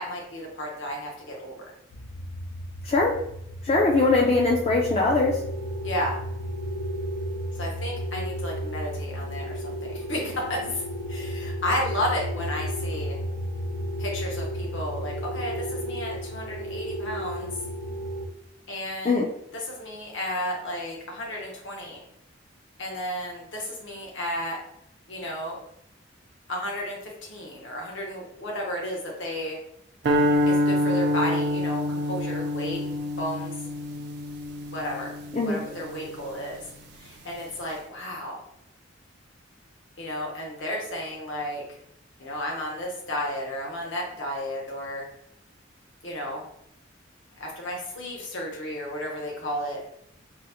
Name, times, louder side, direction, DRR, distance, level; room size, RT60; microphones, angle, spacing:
voice 1, 0.0-1.7 5.8-6.2 7.5-10.8 11.1-13.2 14.0-17.5 18.7-19.2 19.7-22.0 22.8-24.6 25.1-25.6 26.5-29.6 30.5-32.8 33.2-33.5 34.7-35.1 35.4-36.6 37.0-38.4 40.0-41.6 42.2-45.1 46.0-46.5 47.4-49.8, left 1 dB, 70° left, -1 dB, 0.8 m, -32 dB
sound 1, 1.9-18.3, equal, 90° left, 0.5 m, -33 dB
voice 2, 2.8-3.2 3.6-5.4 19.0-19.3 35.3-35.6, left 3 dB, 30° left, -1 dB, 0.3 m, -21 dB
sound 2, 30.0-36.4, left 1 dB, 55° right, 0.3 m, -26 dB
3.8 x 2.0 x 2.8 m, 0.75 s
head